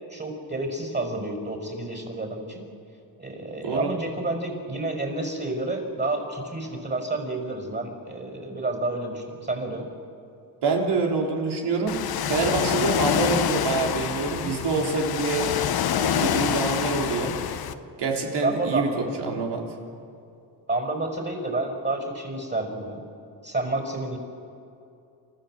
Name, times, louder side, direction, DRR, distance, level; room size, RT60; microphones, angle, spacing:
voice 1, 0.1-2.6 3.2-9.9 18.4-19.4 20.7-23.0 23.4-24.2, right 2 dB, 25° right, 3 dB, 5.6 m, -30 dB
voice 2, 10.6-12.0 12.3-15.5 16.0-17.3 18.0-19.6, right 4 dB, 70° right, 0 dB, 3.7 m, -26 dB
Ocean, 11.9-17.7, left 9 dB, 60° left, 1.0 m, -26 dB
29.0 x 14.0 x 7.8 m, 2.7 s
cardioid pair, 105°, 42 cm